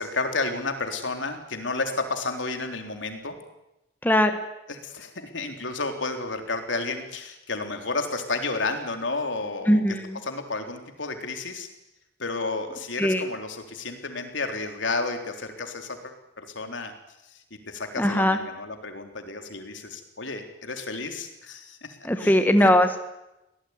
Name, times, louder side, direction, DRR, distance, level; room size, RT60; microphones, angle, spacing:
voice 1, 0.0-3.4 4.7-10.0 10.2-11.7 12.2-16.9 17.2-22.7, left 3 dB, 90° left, 5 dB, 3.7 m, -32 dB
voice 2, 4.0-4.4 9.7-10.2 13.0-13.2 18.0-18.4 22.0-23.0, left 1 dB, 10° left, 7 dB, 1.6 m, -20 dB
24.0 x 18.0 x 9.7 m, 0.92 s
head